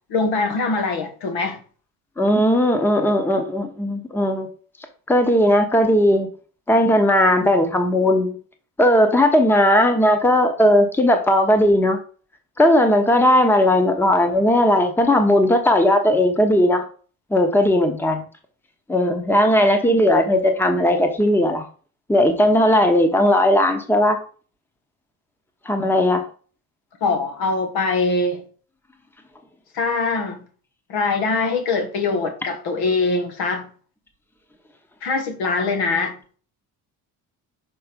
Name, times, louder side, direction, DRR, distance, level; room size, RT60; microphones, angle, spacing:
voice 1, 0.1-1.6 27.0-28.4 29.7-30.4 30.9-33.7 35.0-36.1, left 3 dB, 80° left, 1.3 m, -22 dB
voice 2, 2.2-4.5 5.1-6.3 6.7-8.4 8.8-12.0 12.6-16.8 17.3-18.3 18.9-21.7 22.1-24.2 25.7-26.2, left 1 dB, 5° left, 0.8 m, -17 dB
6.0 x 4.5 x 5.1 m
cardioid pair, 140°, 37 cm